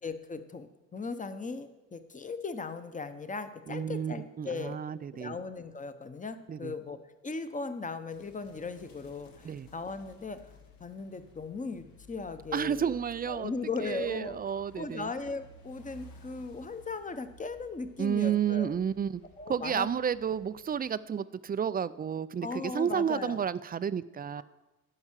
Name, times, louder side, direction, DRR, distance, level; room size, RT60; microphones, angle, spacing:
voice 1, 0.0-4.8 5.1-7.0 7.2-10.4 10.8-12.9 13.3-18.7 19.4-19.9 22.4-23.4 24.4-24.5, left 4 dB, 20° left, 10 dB, 0.9 m, -38 dB
voice 2, 3.7-5.4 6.5-6.7 9.4-9.7 12.5-13.5 13.8-15.1 18.0-19.2 19.5-24.4, right 8 dB, 25° right, 16 dB, 0.4 m, -31 dB
sound 1, 8.1-20.9, left 1 dB, 85° left, 1.7 m, -56 dB
10.5 x 5.4 x 7.4 m, 1.1 s
cardioid pair, 85°, 35 cm